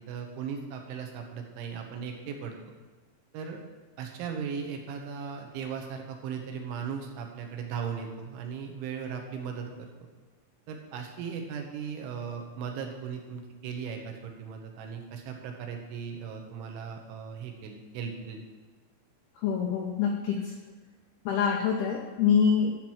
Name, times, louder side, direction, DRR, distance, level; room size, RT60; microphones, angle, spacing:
voice 1, 0.0-2.6 3.3-3.6 4.0-9.9 10.7-18.4, right 6 dB, 80° right, 2 dB, 3.5 m, -37 dB
voice 2, 19.4-20.5 21.3-22.8, left 7 dB, 90° left, 2 dB, 2.2 m, -25 dB
12.0 x 4.6 x 7.3 m, 1.3 s
omnidirectional pair, 5.6 m